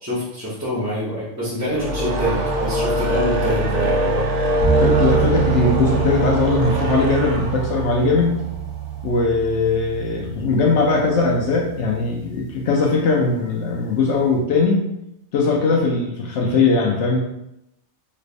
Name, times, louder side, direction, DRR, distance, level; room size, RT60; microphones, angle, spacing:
voice 1, 0.0-4.3, equal, 15° right, -11 dB, 0.8 m, -25 dB
sound 1, 1.6-9.0, right 1 dB, 60° right, 0.7 m, -23 dB
sound 2, 4.6-12.8, right 8 dB, 85° right, 1.2 m, -26 dB
voice 2, 4.8-8.4 9.0-14.8 15.3-17.2, left 4 dB, 75° left, -1 dB, 0.9 m, -20 dB
3.3 x 3.2 x 2.4 m, 0.82 s
omnidirectional pair, 1.2 m